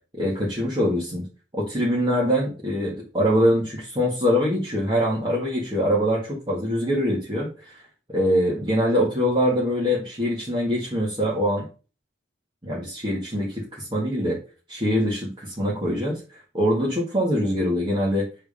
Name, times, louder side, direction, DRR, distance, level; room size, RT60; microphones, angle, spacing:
voice 1, 0.2-1.2 1.5-7.8 8.1-11.6 12.6-14.4 14.7-18.3, equal, 25° right, -5 dB, 2.0 m, -23 dB
7.9 x 3.5 x 5.4 m, 0.33 s
head